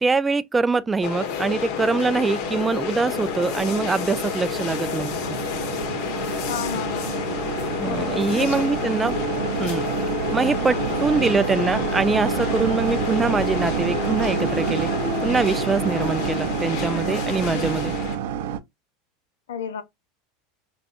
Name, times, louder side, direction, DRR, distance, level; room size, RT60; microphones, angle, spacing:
voice 1, 0.0-5.4 7.8-9.2 9.6-9.9 10.3-14.9 15.2-17.9, right 4 dB, 15° right, 0.3 m, -23 dB
sound 1, 1.0-18.2, left 8 dB, 60° left, 0.8 m, -29 dB
sound 2, 1.1-18.6, right 8 dB, 75° right, 0.5 m, -29 dB
voice 2, 6.5-7.2 7.8-8.7 10.7-11.0 19.5-19.8, left 7 dB, 90° left, 0.5 m, -32 dB
4.8 x 2.3 x 2.4 m
supercardioid pair, 110°, 0 cm